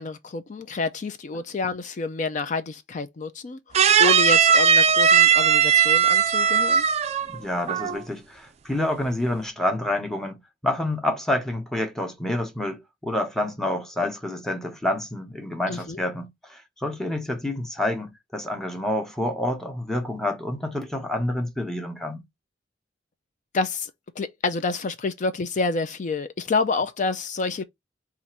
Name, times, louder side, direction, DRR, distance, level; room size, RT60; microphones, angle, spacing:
voice 1, 0.0-3.6 4.0-6.8 15.7-16.0 23.5-23.9 24.2-27.6, left 3 dB, 45° left, 0.4 m, -28 dB
sound 1, 3.7-7.4 7.7-8.0, right 7 dB, 35° right, 0.3 m, -18 dB
voice 2, 7.3-22.2, left 1 dB, 5° left, 1.0 m, -28 dB
4.1 x 2.5 x 4.5 m
head